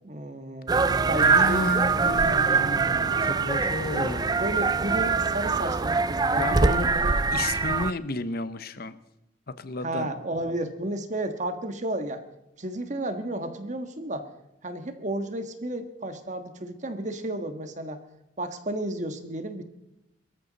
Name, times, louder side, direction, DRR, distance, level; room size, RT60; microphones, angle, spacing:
voice 1, 0.0-1.8 4.4-7.2 9.8-12.2 12.6-14.3 14.6-18.0 18.4-19.6, right 1 dB, 40° right, 8 dB, 1.5 m, -32 dB
sound 1, 0.7-7.9, right 4 dB, 20° right, 0.4 m, -23 dB
voice 2, 1.1-4.4 6.3-6.9 7.3-9.0 9.6-10.1, left 2 dB, 55° left, 13 dB, 0.8 m, -32 dB
24.0 x 13.5 x 4.1 m, 0.88 s
head